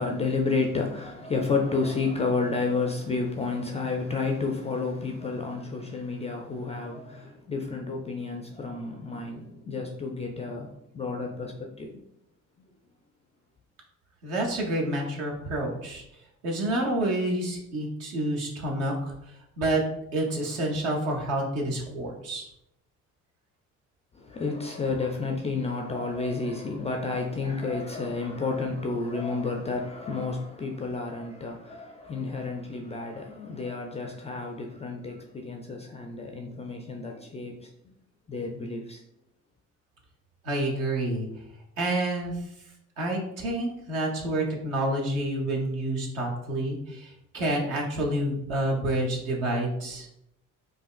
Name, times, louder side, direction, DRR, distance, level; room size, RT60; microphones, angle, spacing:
voice 1, 0.0-11.9 24.3-37.7 38.3-39.0, left 4 dB, 15° left, 2 dB, 0.3 m, -31 dB
voice 2, 14.2-16.0 16.4-19.1 19.6-19.8 20.1-22.5 40.4-41.3 41.8-42.4 43.0-50.1, right 1 dB, 65° right, 0 dB, 1.0 m, -28 dB
5.0 x 2.4 x 2.4 m, 0.77 s
figure-of-eight pair, 45°, 44 cm